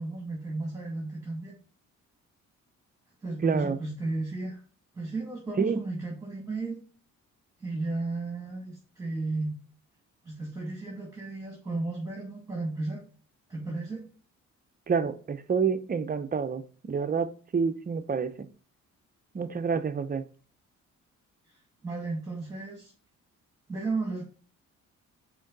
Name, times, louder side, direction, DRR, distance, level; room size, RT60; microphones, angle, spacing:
voice 1, 0.0-1.5 3.2-4.6 4.9-6.8 7.6-9.6 10.2-13.0 13.5-14.0 21.5-21.6 21.8-22.9 23.7-24.2, right 3 dB, 10° right, 2.2 m, -34 dB
voice 2, 3.4-3.8 5.6-5.8 14.9-18.5 19.3-20.2, right 5 dB, 30° right, 0.7 m, -28 dB
6.2 x 4.5 x 4.1 m
cardioid pair, 90°, 30 cm